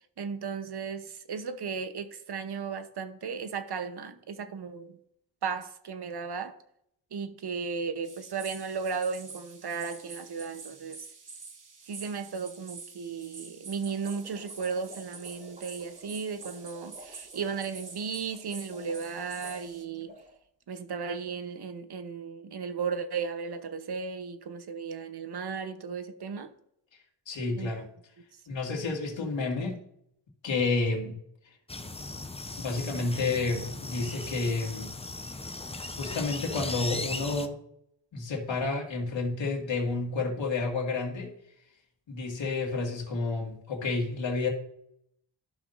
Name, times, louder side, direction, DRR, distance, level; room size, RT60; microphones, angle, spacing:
voice 1, 0.2-5.0 5.4-6.6 7.1-11.0 11.9-20.2 20.7-26.5 27.6-27.7, right 5 dB, 60° right, 1.0 m, -35 dB
sound 1, 8.0-19.8, right 4 dB, 45° right, 1.1 m, -47 dB
sound 2, 13.9-20.3, equal, 15° right, 3.7 m, -52 dB
voice 2, 27.3-27.9 28.5-29.8 30.4-31.2 31.4-31.5 32.6-35.0 36.0-37.6 38.1-41.3 42.1-44.5, left 3 dB, 80° left, 2.2 m, -30 dB
sound 3, 31.7-37.5, left 2 dB, 15° left, 0.7 m, -38 dB
13.5 x 5.8 x 2.6 m
cardioid pair, 70°, 45 cm